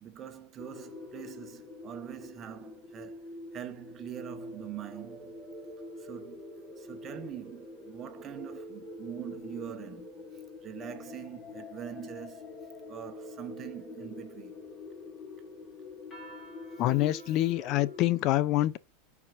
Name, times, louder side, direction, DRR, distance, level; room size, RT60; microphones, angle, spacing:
voice 1, 0.0-3.3 3.5-5.4 6.0-6.4 6.8-10.1 10.6-12.6 12.9-14.5 17.3-17.4, right 10 dB, 35° right, 1.4 m, -43 dB
sound 1, 0.6-18.3, left 2 dB, 25° left, 4.8 m, -45 dB
voice 2, 16.8-18.8, left 15 dB, 50° left, 0.5 m, -26 dB
13.0 x 4.8 x 2.6 m
supercardioid pair, 120°, 0 cm